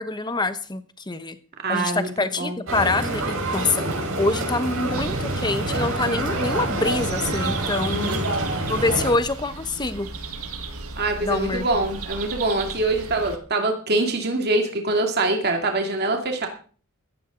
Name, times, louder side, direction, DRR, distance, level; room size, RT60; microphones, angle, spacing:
voice 1, 0.0-1.4 1.7-3.8 4.2-8.2 8.7-10.1 11.2-11.9, left 3 dB, 20° left, 11 dB, 1.0 m, -25 dB
voice 2, 1.6-2.6 7.9-8.3 11.0-16.5, right 2 dB, 50° right, 3 dB, 2.3 m, -24 dB
sound 1, 2.7-9.1, right 2 dB, 65° right, 5.3 m, -26 dB
sound 2, 4.9-13.4, right 4 dB, 85° right, 1.8 m, -36 dB
15.0 x 15.0 x 3.9 m, 0.42 s
head